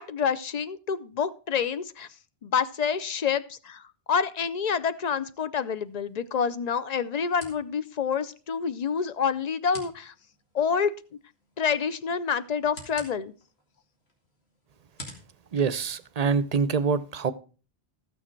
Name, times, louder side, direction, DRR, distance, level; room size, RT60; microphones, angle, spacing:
voice 1, 0.0-2.1 2.4-3.8 4.1-10.1 10.5-10.9 11.6-13.3, left 6 dB, 50° left, 0.6 m, -27 dB
sound 1, 5.6-16.6, left 1 dB, 85° left, 2.5 m, -51 dB
voice 2, 15.5-17.3, right 5 dB, 45° right, 0.6 m, -25 dB
14.0 x 6.3 x 4.4 m
omnidirectional pair, 1.0 m